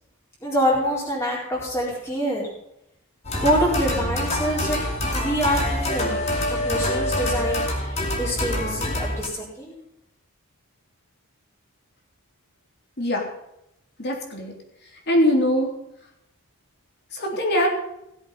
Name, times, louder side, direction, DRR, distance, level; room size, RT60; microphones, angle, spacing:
voice 1, 0.4-2.5 3.4-4.8 5.1-6.2 6.5-9.8, equal, 15° left, -6 dB, 4.4 m, -25 dB
sound 1, 3.2-9.3, left 1 dB, 30° left, 2.7 m, -26 dB
voice 2, 14.0-14.5 15.1-15.7 17.1-17.7, equal, 50° left, 1 dB, 3.4 m, -22 dB
17.5 x 7.8 x 5.6 m, 0.81 s
head